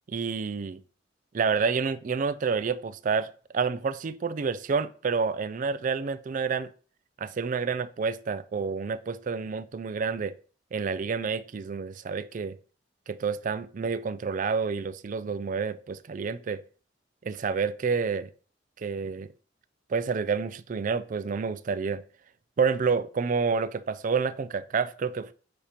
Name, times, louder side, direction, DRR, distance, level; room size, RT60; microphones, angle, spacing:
voice 1, 0.1-0.8 1.3-3.3 3.5-6.7 7.2-10.3 10.7-12.6 13.1-16.6 17.2-18.3 18.8-19.3 19.9-22.0 22.6-25.3, right 5 dB, 45° right, 0.4 m, -29 dB
8.4 x 2.8 x 5.0 m
head